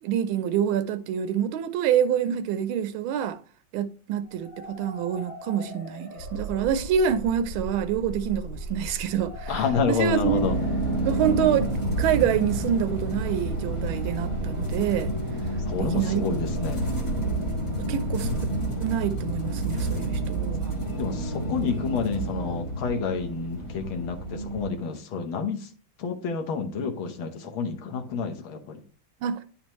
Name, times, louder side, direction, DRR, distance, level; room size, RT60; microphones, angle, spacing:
voice 1, 0.0-3.4 3.7-10.5 11.0-15.1 15.8-16.3 17.8-18.3 18.8-20.8 29.2-29.4, right 9 dB, 90° right, 1.4 m, -26 dB
sound 1, 4.2-14.1, left 2 dB, 15° right, 2.1 m, -45 dB
sound 2, 6.2-18.7, right 1 dB, 65° left, 1.0 m, -38 dB
voice 2, 9.5-10.6 11.3-11.5 15.7-16.9 21.0-25.7 26.0-28.8, left 5 dB, 85° left, 1.9 m, -29 dB
sound 3, 10.2-24.7, right 2 dB, 20° left, 1.1 m, -29 dB
10.0 x 4.4 x 3.0 m
omnidirectional pair, 2.2 m